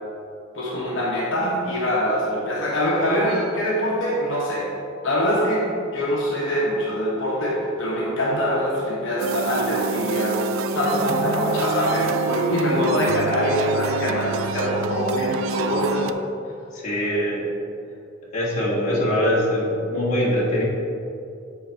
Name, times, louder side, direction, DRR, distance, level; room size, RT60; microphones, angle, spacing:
voice 1, 0.5-4.7 5.0-5.6 5.9-10.4 10.7-16.1, equal, 65° left, -5 dB, 1.1 m, -23 dB
sound 1, 9.2-16.1, right 4 dB, 70° right, 0.3 m, -27 dB
voice 2, 16.7-17.4 18.3-20.6, equal, 35° left, -6 dB, 1.5 m, -22 dB
7.5 x 4.1 x 4.5 m, 2.5 s
head